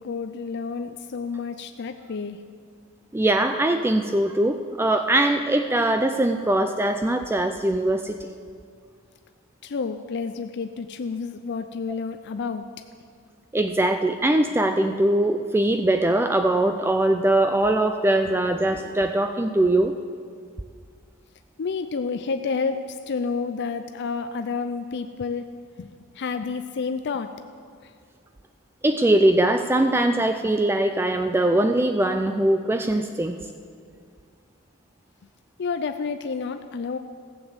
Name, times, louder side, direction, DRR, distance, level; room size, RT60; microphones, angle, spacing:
voice 1, 0.0-2.4 9.6-12.7 21.6-25.4 25.8-27.3 35.6-37.0, left 5 dB, 55° left, 8 dB, 0.5 m, -30 dB
voice 2, 3.1-8.2 13.5-19.9 28.8-33.4, right 1 dB, 10° right, 7 dB, 0.4 m, -21 dB
14.5 x 7.1 x 7.9 m, 2.2 s
head